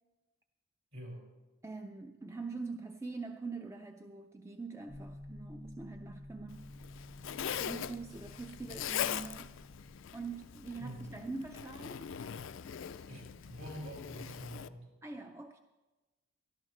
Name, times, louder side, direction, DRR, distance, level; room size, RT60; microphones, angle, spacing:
voice 1, 0.9-1.2 10.8-11.1 13.1-14.9, equal, 60° right, -2 dB, 5.1 m, -45 dB
voice 2, 1.6-6.7 7.6-9.5 10.1-12.1 15.0-15.6, right 3 dB, 15° right, 5 dB, 0.4 m, -44 dB
sound 1, 4.9-10.0, left 1 dB, 40° right, 1.6 m, -51 dB
Zipper (clothing), 6.5-14.7, left 9 dB, 55° left, 0.4 m, -41 dB
17.5 x 13.0 x 3.3 m, 1.2 s
head